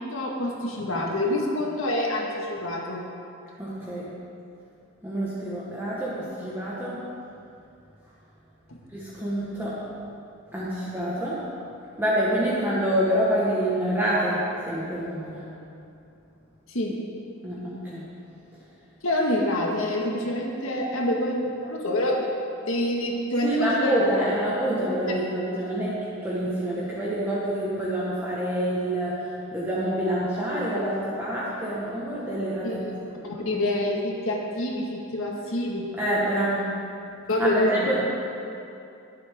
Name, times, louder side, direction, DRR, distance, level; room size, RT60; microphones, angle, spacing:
voice 1, 0.0-3.0 16.7-17.0 19.0-22.3 22.6-23.9 32.6-35.9 37.3-37.9, left 1 dB, 70° left, -1 dB, 1.8 m, -27 dB
voice 2, 3.6-4.1 5.0-7.0 8.9-9.7 10.5-11.4 12.0-15.5 17.4-18.1 23.4-29.1 29.5-32.8 33.1-33.3 36.0-36.7 37.4-38.0, right 1 dB, 10° right, -8 dB, 1.5 m, -27 dB
21.0 x 7.9 x 3.7 m, 2.6 s
head